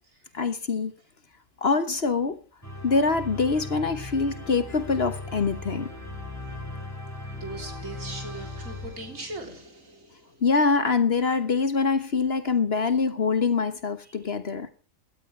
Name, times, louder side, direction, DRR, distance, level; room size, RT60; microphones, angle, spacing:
voice 1, 0.3-0.9 1.6-2.4 2.8-5.9 10.4-14.7, left 4 dB, 50° left, 1.4 m, -24 dB
sound 1, 2.6-9.7, left 2 dB, 10° left, 5.1 m, -38 dB
voice 2, 7.3-10.4, right 2 dB, 75° right, 3.7 m, -40 dB
17.5 x 12.5 x 3.3 m
omnidirectional pair, 1.4 m